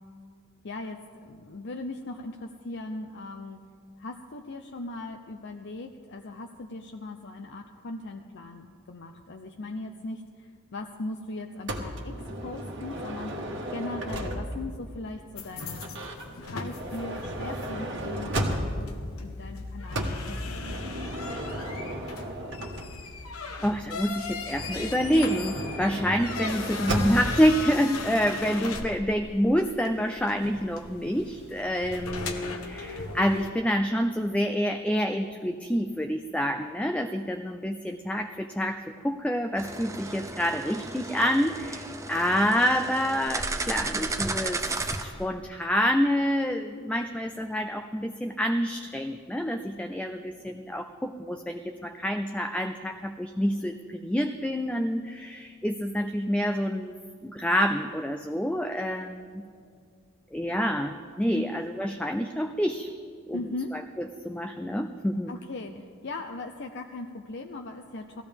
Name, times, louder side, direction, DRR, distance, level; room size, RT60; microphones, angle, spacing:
voice 1, 0.6-3.6 4.0-21.1 61.3-61.5 63.3-63.7 65.3-68.2, left 2 dB, 55° left, 4 dB, 0.6 m, -39 dB
Motor vehicle (road) / Sliding door, 11.7-14.8 15.7-19.0 19.9-23.2 24.4-27.4, right 1 dB, 60° right, 1.4 m, -34 dB
sound 1, 15.4-33.5, left 3 dB, 90° left, 1.1 m, -39 dB
voice 2, 23.6-44.6 45.0-56.9 57.2-59.4 60.3-62.9 63.3-63.4 63.7-63.8 64.2-65.3, equal, 5° left, 5 dB, 0.4 m, -27 dB
sound 2, 39.6-45.0, right 3 dB, 15° right, 0.7 m, -34 dB
19.0 x 15.0 x 3.5 m, 2.1 s
head